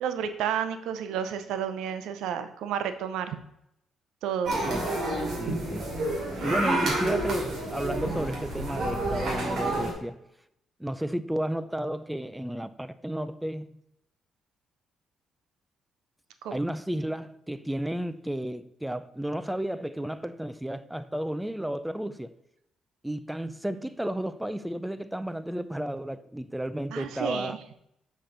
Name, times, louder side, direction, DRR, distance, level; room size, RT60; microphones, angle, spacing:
voice 1, 0.0-3.4 4.2-4.6 16.4-16.5 26.9-27.6, right 8 dB, 90° right, 0.6 m, -31 dB
sound 1, 4.4-9.9, right 2 dB, 60° right, 2.5 m, -29 dB
voice 2, 5.4-5.9 6.4-10.2 10.8-13.7 16.5-22.3 23.0-27.6, right 1 dB, 5° right, 0.4 m, -32 dB
5.8 x 5.2 x 3.8 m
cardioid pair, 90°, 0 cm